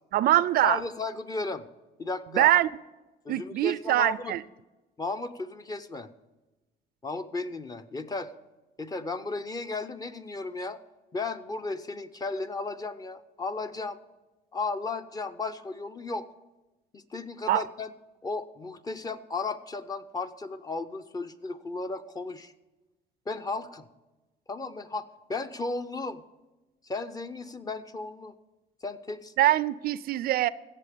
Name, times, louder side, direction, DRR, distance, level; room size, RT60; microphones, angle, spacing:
voice 1, 0.1-0.8 2.3-2.7 3.3-4.4 17.5-17.6 29.4-30.5, right 14 dB, 65° right, 0.4 m, -23 dB
voice 2, 0.6-1.7 2.0-2.5 3.2-4.3 5.0-6.1 7.0-8.3 8.8-10.8 11.1-14.0 14.5-16.3 16.9-17.9 18.2-22.5 23.3-23.9 24.5-26.2 26.8-28.3 28.8-29.3, left 3 dB, 20° left, 0.7 m, -34 dB
16.0 x 7.7 x 5.1 m
cardioid pair, 110°, 17 cm